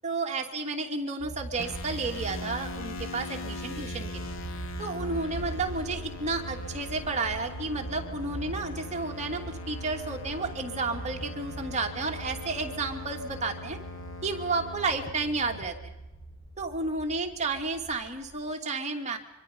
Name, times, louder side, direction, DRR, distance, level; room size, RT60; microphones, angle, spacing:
voice 1, 0.0-4.4 4.8-13.8 14.2-15.9 16.6-19.2, right 3 dB, 35° right, 2 dB, 2.6 m, -32 dB
sound 1, 1.2-18.4, right 2 dB, 25° left, 5.4 m, -42 dB
sound 2, 1.6-15.7, left 2 dB, 65° left, 2.1 m, -41 dB
25.0 x 24.5 x 5.4 m, 0.99 s
head